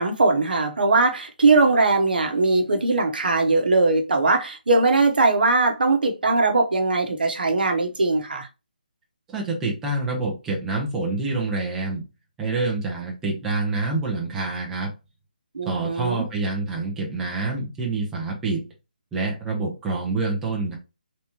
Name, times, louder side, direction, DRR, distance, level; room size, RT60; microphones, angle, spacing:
voice 1, 0.0-8.5 15.5-16.3, right 3 dB, 75° right, 0.8 m, -20 dB
voice 2, 9.3-12.0 12.4-14.9 15.6-18.7 19.1-20.7, right 3 dB, 5° right, 0.6 m, -27 dB
3.5 x 2.9 x 2.8 m
hypercardioid pair, 170°, 5 cm